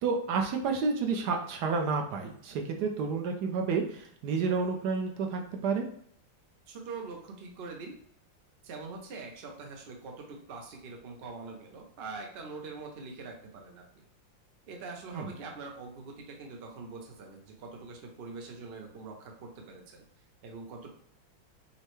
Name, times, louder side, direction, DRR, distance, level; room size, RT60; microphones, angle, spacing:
voice 1, 0.0-5.9 15.1-15.3, right 4 dB, 70° right, 3 dB, 1.0 m, -30 dB
voice 2, 6.7-8.0 8.6-14.1 14.7-20.0 20.4-20.9, right 4 dB, 85° right, 1 dB, 0.5 m, -43 dB
5.5 x 2.1 x 3.0 m, 0.65 s
omnidirectional pair, 2.1 m